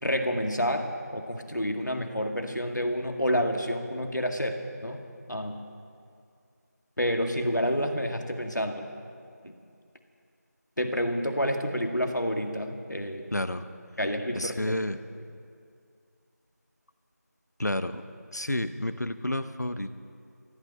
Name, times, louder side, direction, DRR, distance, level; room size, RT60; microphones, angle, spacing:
voice 1, 0.0-5.0 5.3-5.6 7.0-8.8 9.4-9.5 10.8-13.3 14.0-14.8, equal, 90° left, 4 dB, 2.0 m, -29 dB
voice 2, 13.3-13.6 14.3-15.0 17.6-18.0 18.3-19.9, left 1 dB, 70° left, 11 dB, 0.9 m, -30 dB
15.0 x 9.2 x 9.9 m, 2.3 s
figure-of-eight pair, 175°, 9 cm